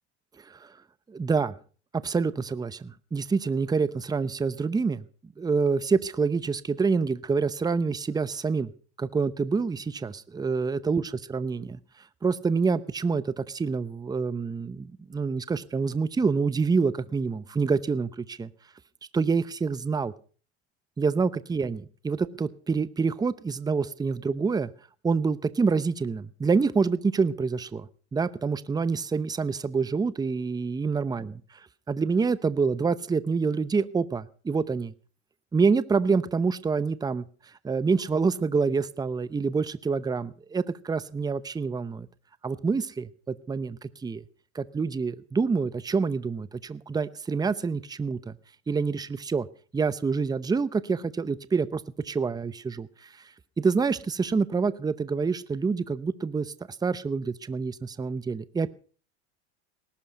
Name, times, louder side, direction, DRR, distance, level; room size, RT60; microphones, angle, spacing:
voice 1, 1.1-1.5 2.0-5.0 5.4-8.7 9.0-11.8 12.2-18.5 19.1-20.1 21.0-24.7 25.0-31.3 31.9-34.9 35.5-37.2 37.6-42.1 42.4-44.2 44.5-48.3 48.7-49.5 49.7-53.1 53.6-56.5 56.8-58.7, right 4 dB, 10° right, 17 dB, 0.8 m, -27 dB
19.0 x 12.0 x 5.3 m, 0.41 s
supercardioid pair, 105°, 34 cm